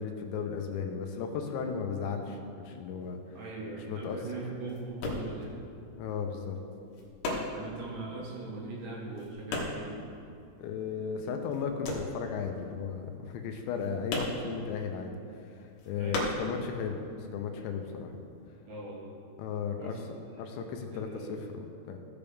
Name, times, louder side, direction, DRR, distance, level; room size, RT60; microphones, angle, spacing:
voice 1, 0.0-3.4 3.9-4.2 6.0-6.6 10.6-15.1 15.5-18.2 19.4-20.0 20.4-22.0, left 6 dB, 85° left, 4 dB, 2.9 m, -35 dB
sound 1, 3.0-11.0 11.3-17.2 17.4-18.5, left 2 dB, 65° left, 2.7 m, -37 dB
voice 2, 3.4-5.6 7.5-10.0 15.9-16.5 18.7-19.1 19.8-20.0 20.4-20.5 20.9-21.4, right 2 dB, 65° right, -5 dB, 3.7 m, -40 dB
16.5 x 6.9 x 3.5 m, 2.6 s
omnidirectional pair, 5.3 m